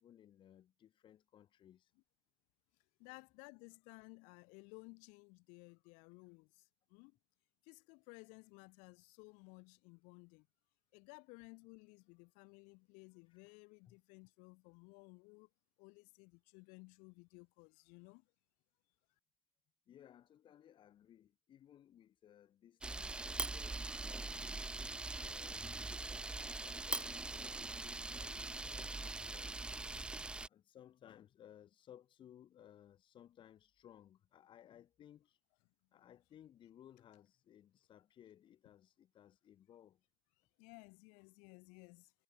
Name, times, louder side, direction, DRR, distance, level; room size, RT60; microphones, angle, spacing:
voice 1, 0.0-1.9 3.1-3.2 13.3-13.5 13.9-14.0 19.9-24.6 25.2-29.7 30.1-35.4 35.9-40.0, left 10 dB, 40° left, 1.1 m, -62 dB
voice 2, 3.0-7.2 7.6-10.5 10.9-15.5 15.8-18.2 40.6-42.1, left 31 dB, 85° left, 1.9 m, -57 dB
Camera, 22.8-30.5, right 2 dB, 10° right, 0.3 m, -42 dB
cardioid pair, 145°, 13 cm